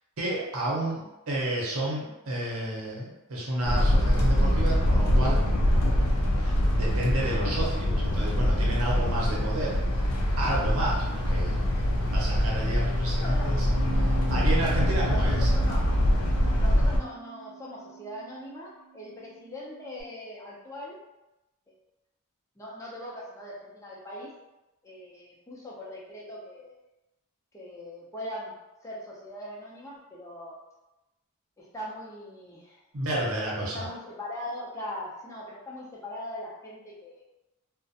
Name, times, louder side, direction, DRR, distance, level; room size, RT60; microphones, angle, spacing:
voice 1, 0.2-5.4 6.4-9.7 10.4-11.6 12.1-13.6 14.0-15.5 32.9-33.9, right 1 dB, 75° right, -4 dB, 0.8 m, -31 dB
sound 1, 3.6-17.0, equal, 75° left, 0.4 m, -24 dB
voice 2, 13.2-13.5 15.0-15.9 16.5-21.0 22.6-24.3 24.8-26.8 27.5-28.5 28.8-30.5 31.6-32.8 33.7-37.3, left 1 dB, 15° left, -5 dB, 0.5 m, -40 dB
Bass guitar, 13.8-20.0, right 13 dB, 40° right, 0.8 m, -44 dB
2.4 x 2.1 x 2.7 m, 0.98 s
head